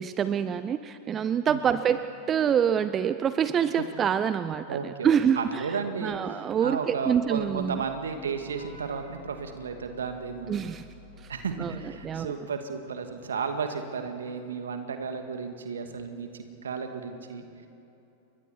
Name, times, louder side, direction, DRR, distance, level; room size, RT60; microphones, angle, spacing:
voice 1, 0.0-5.6 6.0-7.8 10.5-10.9 11.2-11.3 11.6-11.7 12.0-12.3, right 8 dB, 25° right, 13 dB, 0.6 m, -26 dB
voice 2, 4.7-10.6 11.3-17.7, right 5 dB, 65° right, 6 dB, 2.2 m, -34 dB
Vehicle horn car horn honking / Traffic noise roadway noise, 6.8-12.1, left 3 dB, 90° left, 7.4 m, -52 dB
30.0 x 23.0 x 4.6 m, 2.9 s
figure-of-eight pair, 90°, 0 cm